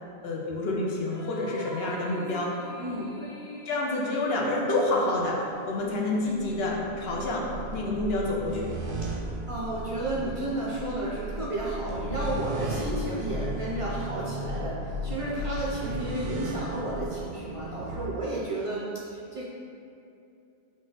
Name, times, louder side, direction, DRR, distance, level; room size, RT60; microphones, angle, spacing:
voice 1, 0.2-2.5 3.7-8.7, left 2 dB, 75° left, -2 dB, 0.8 m, -28 dB
sound 1, 1.0-5.7, left 1 dB, 45° left, 0.3 m, -44 dB
voice 2, 2.8-3.2 9.5-19.4, right 1 dB, 45° right, -6 dB, 0.4 m, -32 dB
sound 2, 5.4-18.1, right 1 dB, 85° right, 0.8 m, -35 dB
3.9 x 2.4 x 3.8 m, 2.6 s
omnidirectional pair, 1.1 m